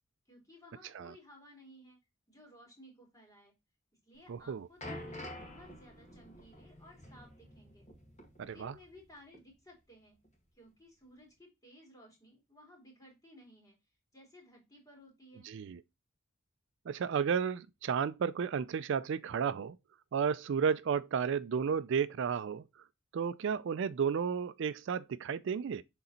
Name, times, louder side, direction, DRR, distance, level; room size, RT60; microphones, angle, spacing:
voice 1, 0.2-2.0 2.3-3.5 4.0-7.9 8.4-10.2 10.5-13.8 14.1-15.5, left 1 dB, 15° left, 3.1 m, -58 dB
sound 1, 4.2-9.1 9.3-9.5 10.2-10.3, left 1 dB, 35° left, 2.1 m, -48 dB
voice 2, 4.3-4.7 8.4-8.7 15.5-15.8 16.9-19.8 20.1-22.6 23.1-25.8, right 6 dB, 60° right, 0.3 m, -32 dB
6.8 x 3.9 x 4.1 m
head